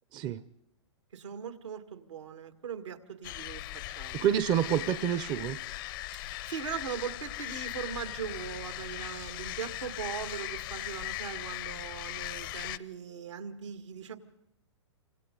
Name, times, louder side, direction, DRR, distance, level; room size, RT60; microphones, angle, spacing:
voice 1, 1.1-3.6 4.0-4.3 6.1-14.2, right 7 dB, 80° right, 6 dB, 2.2 m, -40 dB
sound 1, 3.2-12.8, left 17 dB, 50° left, 0.7 m, -39 dB
voice 2, 4.1-5.6, right 9 dB, 30° right, 13 dB, 0.7 m, -28 dB
29.0 x 25.5 x 3.9 m, 0.87 s
hypercardioid pair, 125°, 15 cm